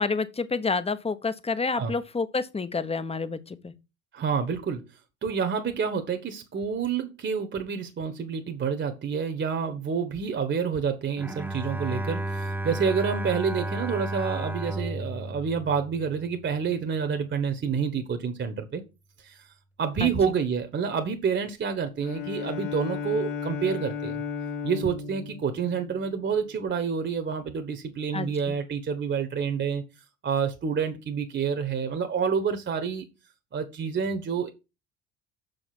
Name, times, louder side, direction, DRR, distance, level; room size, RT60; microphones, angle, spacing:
voice 1, 0.0-3.7 20.0-20.1 28.1-28.3, left 4 dB, 15° left, 1.0 m, -28 dB
voice 2, 4.1-4.8 5.2-18.8 19.2-19.4 19.8-24.2 24.6-29.8 30.2-33.0 33.5-34.5, right 6 dB, 30° right, 1.4 m, -28 dB
Bowed string instrument, 11.2-16.5, right 1 dB, 5° right, 0.6 m, -33 dB
Bowed string instrument 2, 22.0-26.6, left 6 dB, 60° left, 2.2 m, -35 dB
7.0 x 5.3 x 6.0 m
figure-of-eight pair, 60°, 39 cm